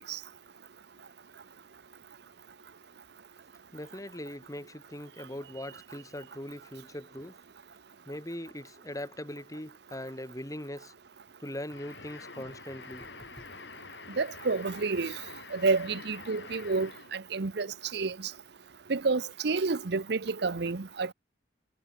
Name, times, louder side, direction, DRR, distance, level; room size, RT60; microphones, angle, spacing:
voice 1, 3.7-7.4 8.1-10.9 11.4-13.1 13.4-13.5, left 1 dB, 20° left, 7.3 m, -41 dB
sound 1, 11.7-17.2, left 4 dB, 70° left, 5.3 m, -47 dB
voice 2, 14.2-15.1 15.5-18.3 18.9-21.1, right 4 dB, 65° right, 0.8 m, -30 dB
head